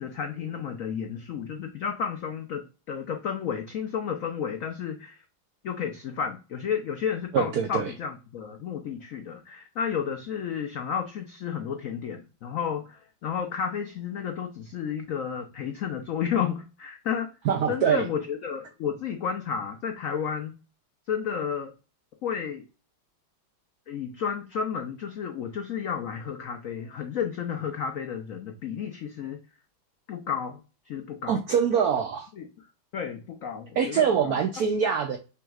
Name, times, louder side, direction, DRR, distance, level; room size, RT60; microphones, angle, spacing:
voice 1, 0.0-5.2 5.6-17.3 17.7-20.6 21.1-21.7 22.2-22.6 23.9-29.4 30.1-30.6 30.9-31.4 32.4-32.5 32.9-34.4, left 7 dB, 75° left, 5 dB, 0.7 m, -32 dB
voice 2, 7.3-7.9 17.4-18.1 31.3-32.3 33.8-35.2, right 7 dB, 75° right, 4 dB, 0.8 m, -24 dB
6.0 x 3.6 x 2.3 m, 0.32 s
omnidirectional pair, 2.1 m